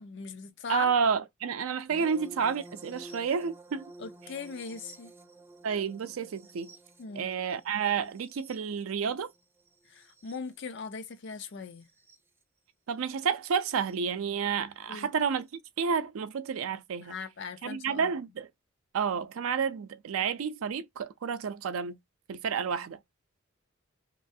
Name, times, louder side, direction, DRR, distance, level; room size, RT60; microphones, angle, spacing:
voice 1, 0.0-0.9 2.0-2.1 4.0-5.1 7.0-7.3 9.9-11.8 14.9-15.1 17.0-18.1, left 5 dB, 60° left, 0.5 m, -40 dB
voice 2, 0.7-3.9 5.6-6.7 7.2-9.3 12.9-15.5 15.8-17.1 17.6-18.5 18.9-22.0 22.3-23.0, right 6 dB, 80° right, 0.4 m, -30 dB
sound 1, 1.9-10.6 11.9-12.2 13.9-14.0, right 2 dB, 10° right, 0.4 m, -51 dB
3.0 x 2.3 x 2.6 m
head